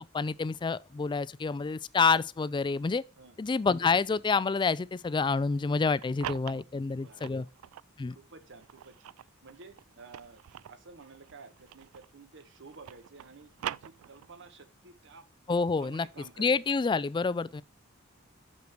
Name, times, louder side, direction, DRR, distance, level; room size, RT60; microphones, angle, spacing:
voice 1, 0.0-3.0 3.4-7.5 8.0-8.2 15.5-16.1 16.4-17.6, left 4 dB, 20° left, 0.3 m, -28 dB
sound 1, 6.0-7.9 8.5-12.2 12.5-14.5, right 11 dB, 90° right, 0.3 m, -43 dB
voice 2, 6.7-7.5 8.1-15.3 15.8-16.5, right 4 dB, 60° right, 1.2 m, -52 dB
8.3 x 6.6 x 4.5 m
head